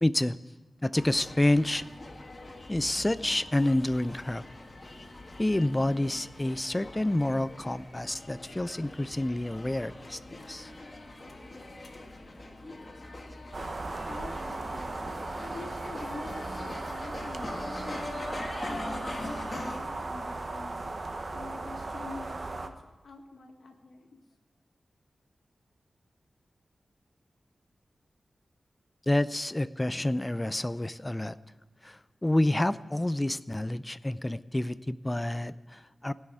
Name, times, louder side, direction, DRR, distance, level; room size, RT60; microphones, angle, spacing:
voice 1, 0.0-0.4 0.8-1.8 2.7-4.4 5.4-10.7 29.1-31.4 31.8-36.1, left 1 dB, 15° left, 15 dB, 0.4 m, -28 dB
sound 1, 0.9-19.8, left 2 dB, 30° left, 1.6 m, -43 dB
sound 2, 13.5-22.7, right 2 dB, 45° right, 1.0 m, -37 dB
voice 2, 14.0-15.0 15.4-20.9 21.3-22.7 23.0-24.1, left 3 dB, 70° left, 3 dB, 1.7 m, -45 dB
16.5 x 6.3 x 9.0 m, 1.1 s
wide cardioid pair, 105°, 0 cm